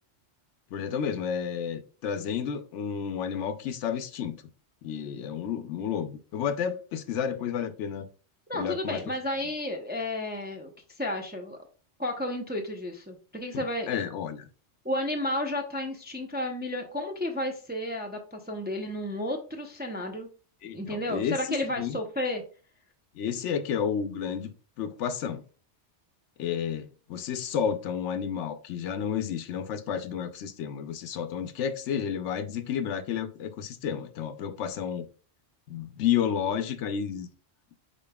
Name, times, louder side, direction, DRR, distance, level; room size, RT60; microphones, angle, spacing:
voice 1, 0.7-4.4 4.8-8.1 8.5-9.0 13.5-14.5 20.6-21.4 21.8-22.0 23.1-24.5 24.8-25.4 26.4-35.1 35.7-37.3, left 8 dB, 85° left, 0.9 m, -31 dB
voice 2, 8.5-10.7 11.0-11.6 12.0-13.9 14.8-20.3 20.7-22.4, left 1 dB, 15° right, 0.4 m, -32 dB
5.2 x 4.5 x 2.2 m
omnidirectional pair, 1.2 m